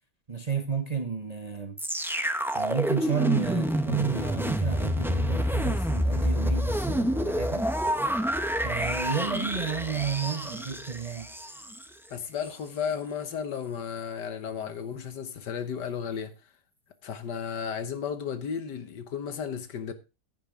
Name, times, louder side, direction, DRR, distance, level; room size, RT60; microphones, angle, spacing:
voice 1, 0.3-1.8 2.5-7.7 8.6-11.3, right 6 dB, 30° right, 0.7 m, -31 dB
sound 1, 1.8-11.8 12.4-12.5, equal, 5° right, 0.4 m, -28 dB
voice 2, 12.1-16.3 17.0-19.9, left 7 dB, 80° left, 1.8 m, -34 dB
10.5 x 9.9 x 3.7 m
omnidirectional pair, 1.8 m